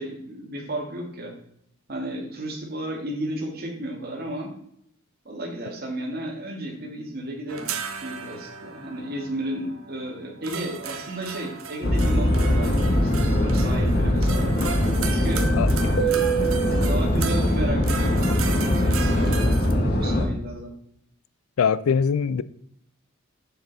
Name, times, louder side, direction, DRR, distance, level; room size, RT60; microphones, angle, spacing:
voice 1, 0.0-1.3 1.9-4.5 5.3-7.7 8.0-14.6 15.1-15.5 15.9-16.3 16.8-20.7, right 1 dB, 50° right, 1.9 m, -33 dB
sound 1, 7.5-19.7, right 6 dB, 75° right, 0.9 m, -36 dB
sound 2, 11.8-20.3, equal, 50° left, 1.4 m, -21 dB
voice 2, 21.6-22.4, left 6 dB, 85° left, 0.4 m, -22 dB
6.7 x 6.7 x 4.0 m
head